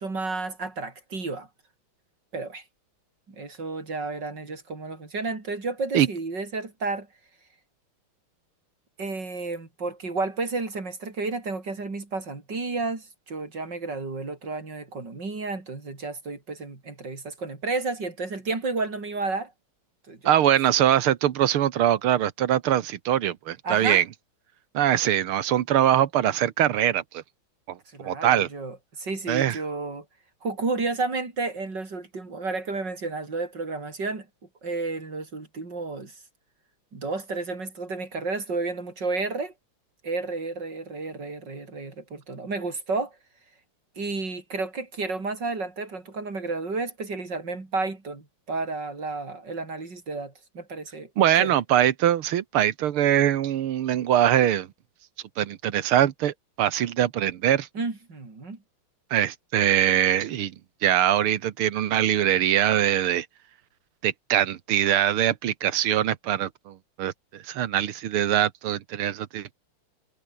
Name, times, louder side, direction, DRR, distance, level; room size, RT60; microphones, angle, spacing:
voice 1, 0.0-1.5 2.3-2.6 3.4-7.1 9.0-19.5 20.1-20.4 23.6-24.0 27.9-30.1 30.4-34.3 34.6-36.1 36.9-39.5 40.0-43.2 44.0-51.1 51.4-51.6 57.8-58.6, right 3 dB, 55° right, 5.2 m, -31 dB
voice 2, 20.3-24.0 24.7-27.0 27.7-27.8 28.0-28.5 29.3-29.6 51.2-54.7 55.4-57.7 59.1-60.5 60.8-63.3 64.0-69.5, right 11 dB, 85° right, 2.0 m, -22 dB
omnidirectional pair, 2.3 m